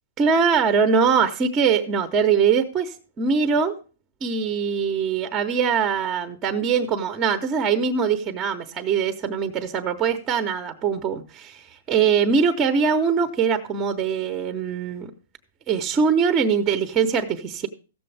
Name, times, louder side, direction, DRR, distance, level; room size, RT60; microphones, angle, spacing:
voice 1, 0.2-3.7 4.2-15.1 15.7-17.7, right 6 dB, 25° right, 0.8 m, -22 dB
15.0 x 6.8 x 3.3 m
hypercardioid pair, 140°, 0 cm